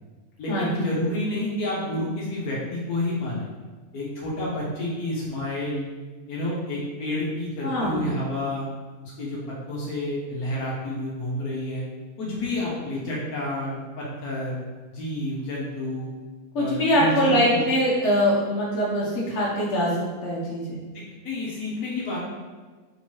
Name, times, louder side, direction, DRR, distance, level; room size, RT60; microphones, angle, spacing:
voice 1, 0.4-3.5 3.9-5.9 6.3-8.7 9.2-11.8 12.2-14.6 14.9-16.1 16.6-17.6 21.2-22.2, left 1 dB, 75° left, -5 dB, 1.3 m, -29 dB
voice 2, 7.6-8.0 16.5-19.9 20.2-20.8, equal, 55° left, -5 dB, 1.3 m, -23 dB
3.4 x 2.9 x 4.5 m, 1.4 s
omnidirectional pair, 1.6 m